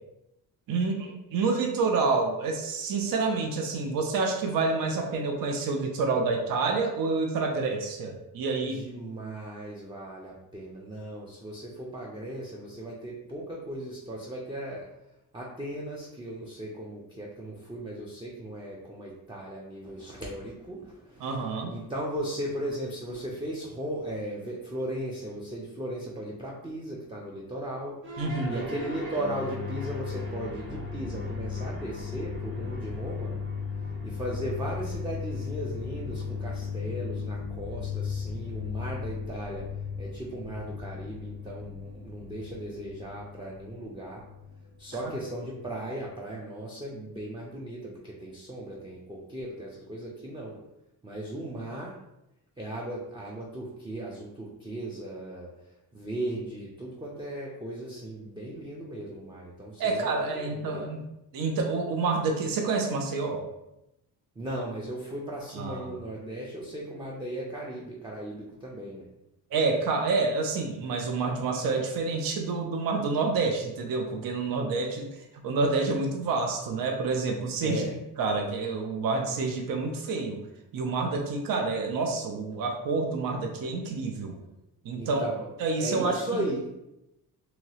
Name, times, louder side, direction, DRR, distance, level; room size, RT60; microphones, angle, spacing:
voice 1, 0.7-8.8 21.2-21.7 28.2-28.6 59.8-61.0 61.3-63.5 65.5-66.0 69.5-77.8 78.2-80.4 80.7-84.3 84.8-85.3 85.6-86.4, right 4 dB, 60° right, 2 dB, 0.6 m, -28 dB
voice 2, 8.6-14.9 15.3-21.3 21.7-33.3 34.0-39.7 40.0-44.2 44.8-50.6 51.0-52.0 52.6-55.5 55.9-60.8 64.4-69.0 77.6-78.0 85.0-85.5 85.8-86.8, right 1 dB, 15° right, -3 dB, 0.5 m, -37 dB
sound 1, 28.0-46.3, left 5 dB, 30° right, 0.9 m, -36 dB
2.9 x 2.8 x 2.8 m, 0.89 s
cardioid pair, 85°, 38 cm